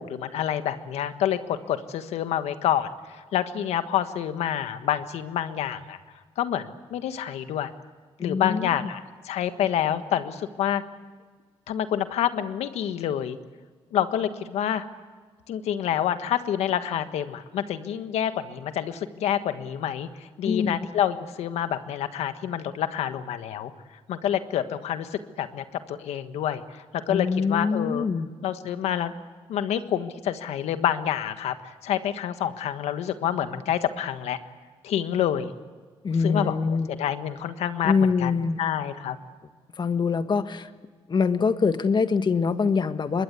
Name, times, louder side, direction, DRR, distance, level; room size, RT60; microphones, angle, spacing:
voice 1, 0.0-6.0 6.4-7.7 8.2-10.8 11.7-13.4 13.9-14.8 15.5-23.7 24.1-28.1 28.4-29.1 29.5-34.4 34.8-35.5 36.2-38.3 38.6-39.2, left 10 dB, 90° left, 10 dB, 1.4 m, -28 dB
voice 2, 8.2-8.6 20.4-20.7 27.1-28.3 36.0-36.9 37.8-38.6 39.8-40.7 41.1-43.2, left 5 dB, 45° left, 10 dB, 1.6 m, -24 dB
25.0 x 21.0 x 8.3 m, 1.5 s
cardioid pair, 75°, 11 cm